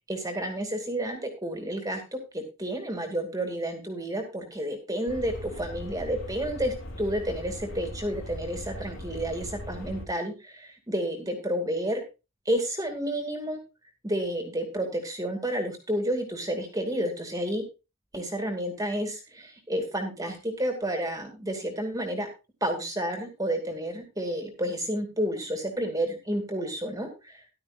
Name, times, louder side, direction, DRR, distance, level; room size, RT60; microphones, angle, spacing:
voice 1, 0.1-12.0 12.5-13.6 14.0-17.6 18.1-22.3 22.6-27.3, right 1 dB, 15° right, 5 dB, 2.4 m, -30 dB
sound 1, 5.1-10.1, left 1 dB, 65° left, 3.0 m, -39 dB
14.5 x 12.0 x 2.5 m, 0.28 s
head